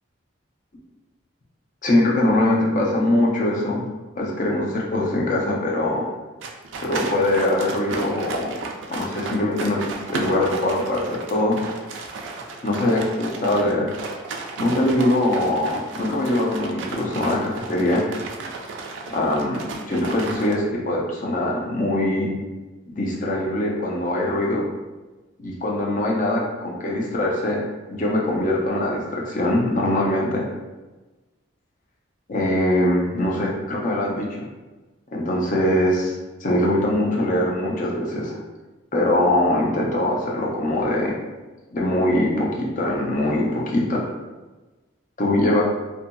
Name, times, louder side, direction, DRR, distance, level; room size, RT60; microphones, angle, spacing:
voice 1, 1.8-3.8 4.2-6.0 6.8-8.5 8.9-11.6 12.6-13.9 14.6-18.0 19.1-22.3 22.9-24.6 25.4-27.6 27.9-30.4 32.3-34.3 35.1-36.1 36.4-38.4 38.9-41.1 41.7-44.0 45.2-45.6, left 1 dB, 40° left, -2 dB, 0.5 m, -22 dB
sound 1, 6.4-20.5, right 3 dB, 70° right, 0.3 m, -34 dB
2.7 x 2.5 x 2.2 m, 1.2 s
head